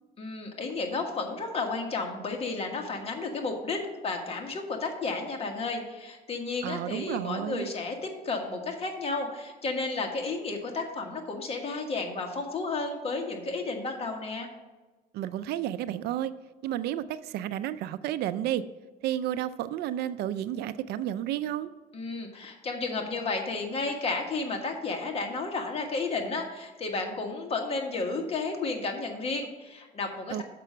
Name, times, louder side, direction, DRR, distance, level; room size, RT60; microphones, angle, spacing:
voice 1, 0.2-14.5 21.9-30.4, left 3 dB, 35° left, 2 dB, 1.5 m, -32 dB
voice 2, 6.6-7.7 15.1-16.3 16.6-18.6 19.0-21.7 30.3-30.4, right 12 dB, 75° right, 14 dB, 0.4 m, -31 dB
6.7 x 5.5 x 6.1 m, 1.2 s
cardioid pair, 110°, 17 cm